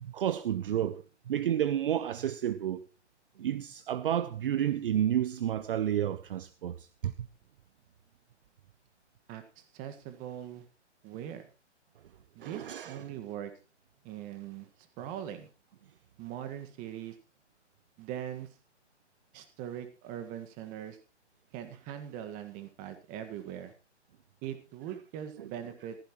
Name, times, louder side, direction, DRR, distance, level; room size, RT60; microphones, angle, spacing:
voice 1, 0.0-2.9 3.4-7.1 12.4-13.0 25.4-25.5, right 10 dB, 50° right, 0.7 m, -31 dB
voice 2, 9.3-10.6 11.0-11.5 12.4-13.5 14.0-14.7 15.0-15.5 16.2-17.2 18.0-18.5 19.3-21.0 21.5-23.7 24.4-26.0, right 10 dB, 25° right, 1.8 m, -41 dB
15.0 x 14.5 x 3.1 m
hypercardioid pair, 145°, 35 cm